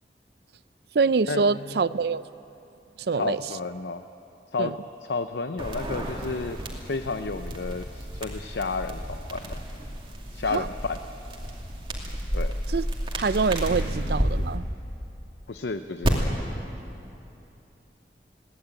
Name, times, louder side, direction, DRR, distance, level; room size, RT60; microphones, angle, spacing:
voice 1, 0.9-2.2 3.1-3.4 4.6-4.7 10.5-10.7 12.7-12.9 13.2-14.6, right 4 dB, 65° right, 17 dB, 0.5 m, -25 dB
voice 2, 3.1-4.0 4.5-4.8 5.0-6.6 6.9-9.6 10.3-11.0 12.3-12.5 15.5-16.3, left 3 dB, 80° left, 9 dB, 0.6 m, -31 dB
sound 1, 5.6-14.3 16.0-16.1, equal, 30° right, 2.6 m, -32 dB
21.5 x 18.0 x 8.9 m, 2.9 s
head